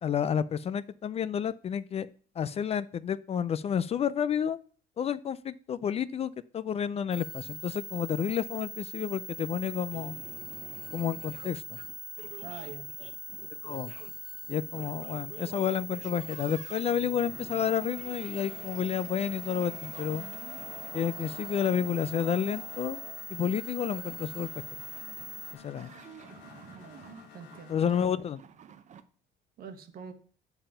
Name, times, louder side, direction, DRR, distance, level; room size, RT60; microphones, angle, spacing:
voice 1, 0.0-2.1 2.4-4.6 5.0-10.2 10.9-11.8 13.6-13.9 14.5-20.3 20.9-23.0 23.3-24.5 25.6-25.9 27.7-28.4, left 8 dB, 40° left, 16 dB, 0.4 m, -30 dB
sound 1, 7.1-25.5, right 1 dB, ahead, 0.9 m, -42 dB
sound 2, 9.9-29.0, right 8 dB, 45° right, 0.7 m, -51 dB
voice 2, 12.4-12.9 27.3-28.1 29.6-30.1, right 7 dB, 60° right, 8 dB, 1.2 m, -44 dB
sound 3, 17.0-28.1, left 7 dB, 90° left, 1.3 m, -51 dB
7.0 x 5.5 x 5.6 m, 0.42 s
cardioid pair, 110°, 17 cm